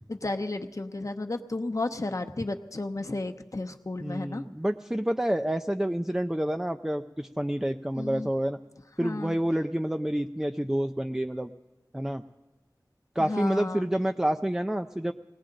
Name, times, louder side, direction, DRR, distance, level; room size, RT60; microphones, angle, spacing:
voice 1, 0.1-4.4 7.9-8.3 9.0-9.4 13.2-13.9, left 2 dB, 50° left, 6 dB, 0.8 m, -33 dB
voice 2, 4.0-8.6 9.0-11.5 11.9-12.2 13.2-15.1, right 1 dB, 5° right, 6 dB, 0.4 m, -28 dB
19.5 x 17.5 x 3.9 m, 1.1 s
wide cardioid pair, 50°, 7 cm